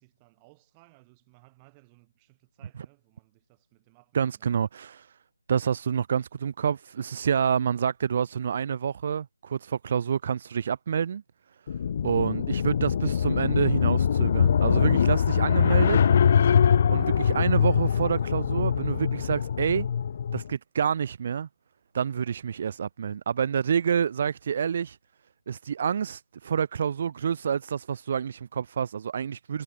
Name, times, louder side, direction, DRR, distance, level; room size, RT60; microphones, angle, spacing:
voice 1, 0.0-4.6, right 28 dB, 15° right, 7.6 m, -60 dB
voice 2, 4.1-5.2 5.5-11.2 12.0-16.0 16.9-19.9 20.3-21.5 21.9-25.0 25.5-29.6, right 7 dB, 30° right, 0.7 m, -28 dB
sound 1, 11.7-20.5, left 7 dB, 30° left, 0.7 m, -23 dB
figure-of-eight pair, 160°, 0 cm